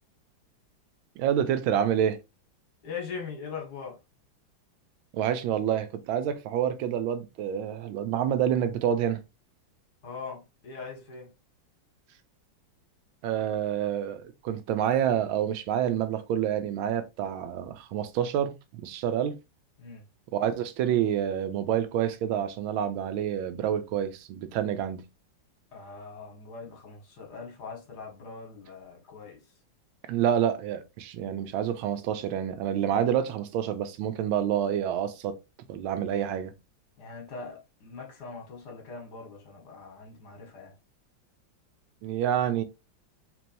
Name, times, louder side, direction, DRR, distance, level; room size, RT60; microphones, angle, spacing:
voice 1, 1.2-2.2 5.1-9.2 13.2-19.4 20.3-25.1 30.1-35.4 35.7-36.5 42.0-42.6, right 9 dB, 90° right, 1.5 m, -28 dB
voice 2, 2.8-4.0 10.0-11.3 19.8-20.1 25.7-29.4 37.0-40.7, left 5 dB, 55° left, 1.9 m, -41 dB
4.6 x 3.4 x 2.6 m
omnidirectional pair, 2.2 m